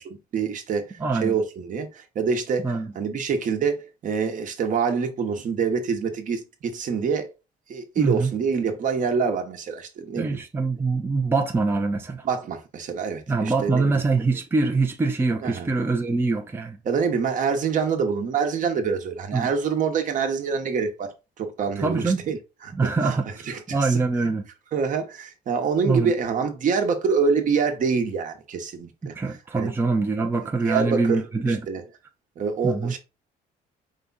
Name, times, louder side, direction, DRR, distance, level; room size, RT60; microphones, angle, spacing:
voice 1, 0.0-7.3 7.7-10.4 12.2-13.9 15.4-15.7 16.8-22.4 22.6-23.2 23.5-24.3 24.7-29.1 29.5-29.7 30.6-31.2 31.7-31.8 32.4-33.0, right 5 dB, 50° right, 1.0 m, -26 dB
voice 2, 1.0-1.3 2.6-2.9 8.0-8.3 10.2-12.3 13.3-16.8 19.3-19.5 21.8-22.2 22.7-24.4 25.8-26.1 29.0-31.6 32.6-32.9, right 3 dB, 15° right, 0.6 m, -24 dB
4.9 x 2.3 x 4.0 m
cardioid pair, 110°, 17 cm